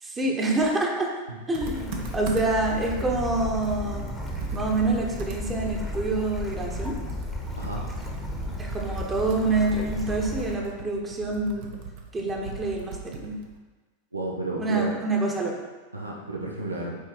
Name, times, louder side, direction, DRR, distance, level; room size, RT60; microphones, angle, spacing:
voice 1, 0.0-1.1 1.5-4.1 4.5-7.0 8.6-11.7 12.1-13.4 14.6-15.6, right 2 dB, 15° right, 0 dB, 1.2 m, -27 dB
Computer keyboard, 1.5-2.7 3.2-3.3 3.6-6.8 7.1-13.6, right 5 dB, 50° right, 0.9 m, -40 dB
Bird / Stream, 1.6-10.5, left 1 dB, 5° left, 1.2 m, -34 dB
voice 2, 7.5-7.9 14.1-15.0 15.9-17.0, right 2 dB, 80° right, -1 dB, 0.9 m, -32 dB
7.1 x 4.5 x 4.6 m, 1.3 s
figure-of-eight pair, 90°, 0 cm